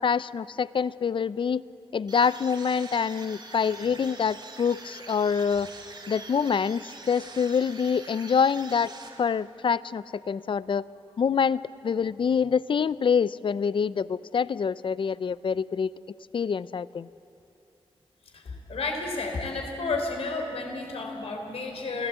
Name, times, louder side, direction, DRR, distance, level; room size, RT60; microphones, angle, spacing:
voice 1, 0.0-1.6 1.9-5.7 6.1-8.9 9.2-10.9 11.2-15.9 16.3-17.1, left 6 dB, 55° left, 18 dB, 0.5 m, -26 dB
sound 1, 2.1-9.6, right 3 dB, 50° right, 3.7 m, -45 dB
voice 2, 18.3-22.1, left 3 dB, 80° left, 3 dB, 3.7 m, -31 dB
28.5 x 16.5 x 8.2 m, 2.7 s
wide cardioid pair, 85°, 10 cm